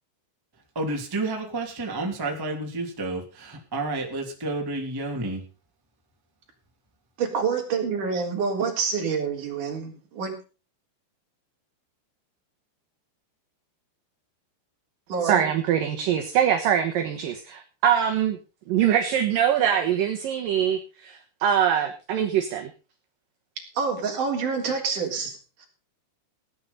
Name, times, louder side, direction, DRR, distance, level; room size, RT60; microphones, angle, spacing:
voice 1, 0.7-5.4, right 2 dB, 5° right, 1 dB, 2.1 m, -30 dB
voice 2, 7.2-10.3 15.1-15.4 23.7-25.7, right 5 dB, 45° right, 1 dB, 4.8 m, -27 dB
voice 3, 15.2-18.4 18.7-22.7, right 9 dB, 65° right, 4 dB, 2.5 m, -23 dB
17.0 x 9.9 x 5.5 m, 0.34 s
omnidirectional pair, 5.2 m